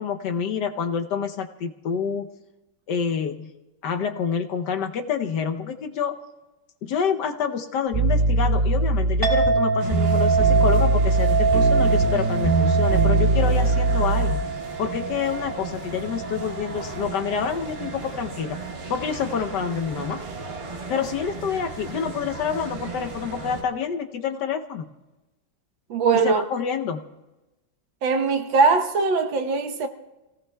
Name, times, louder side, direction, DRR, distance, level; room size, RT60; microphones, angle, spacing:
voice 1, 0.0-2.4 2.9-3.5 3.8-6.2 6.8-14.4 14.8-18.6 18.9-20.2 20.9-24.9 26.2-27.0, left 7 dB, 65° left, 1.3 m, -27 dB
sound 1, 7.9-14.3, right 3 dB, 5° right, 2.5 m, -21 dB
Chink clink, 9.2-17.9, right 5 dB, 10° left, 3.2 m, -26 dB
sound 2, 9.8-23.6, right 3 dB, 40° right, 1.1 m, -36 dB
voice 2, 25.9-26.5 28.0-29.9, right 4 dB, 80° right, 1.8 m, -21 dB
29.0 x 18.0 x 2.3 m
omnidirectional pair, 2.1 m